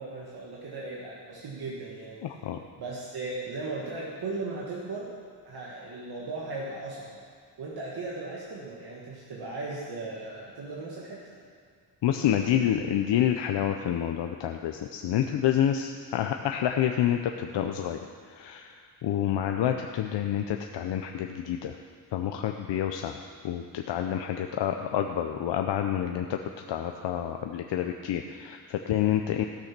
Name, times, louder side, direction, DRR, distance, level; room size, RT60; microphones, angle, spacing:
voice 1, 0.0-2.2 2.8-5.1 5.4-7.2 7.6-11.4, right 3 dB, 60° right, -4 dB, 1.6 m, -37 dB
voice 2, 2.2-2.6 12.0-18.0 18.3-21.8 22.1-23.2 23.4-26.4 26.7-29.4, left 10 dB, 75° left, 4 dB, 0.7 m, -28 dB
14.5 x 6.6 x 6.0 m, 2.2 s
wide cardioid pair, 160°, 43 cm